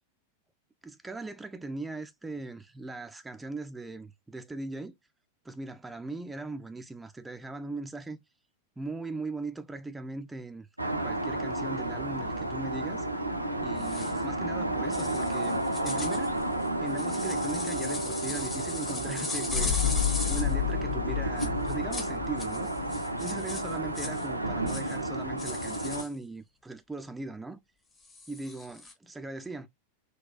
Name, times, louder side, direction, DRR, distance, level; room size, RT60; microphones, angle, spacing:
voice 1, 0.8-4.9 5.4-8.2 8.8-10.7 11.0-13.2 13.6-16.3 16.8-19.8 20.3-22.7 23.2-27.6 28.3-29.7, right 2 dB, 10° right, 0.3 m, -39 dB
sound 1, 10.8-26.0, right 1 dB, 85° right, 0.4 m, -32 dB
sound 2, 13.8-14.2 14.9-20.5 21.4-22.1 22.4-24.3 24.7-25.0 25.4-26.1 28.0-28.9, left 3 dB, 15° left, 0.7 m, -38 dB
sound 3, 19.5-24.0 24.3-24.4, left 11 dB, 75° left, 1.5 m, -32 dB
3.9 x 2.2 x 2.3 m
figure-of-eight pair, 90°, 0 cm